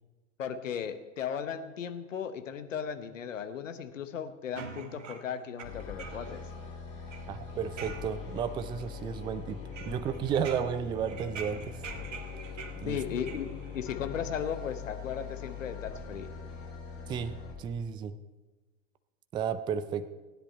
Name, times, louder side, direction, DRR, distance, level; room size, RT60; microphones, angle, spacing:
voice 1, 0.4-6.4 12.9-16.3, left 8 dB, 75° left, 10 dB, 1.1 m, -36 dB
sound 1, 4.6-6.5 6.8-8.5 8.8-9.3 9.7-13.8, right 6 dB, 70° right, 1.5 m, -45 dB
sound 2, 5.6-17.5, left 6 dB, 35° left, 3.8 m, -42 dB
voice 2, 7.3-9.6 9.8-11.8 12.8-13.0 17.1-18.2 19.3-20.1, right 7 dB, 15° right, 12 dB, 0.3 m, -33 dB
15.5 x 10.0 x 4.3 m, 1.3 s
figure-of-eight pair, 85°, 39 cm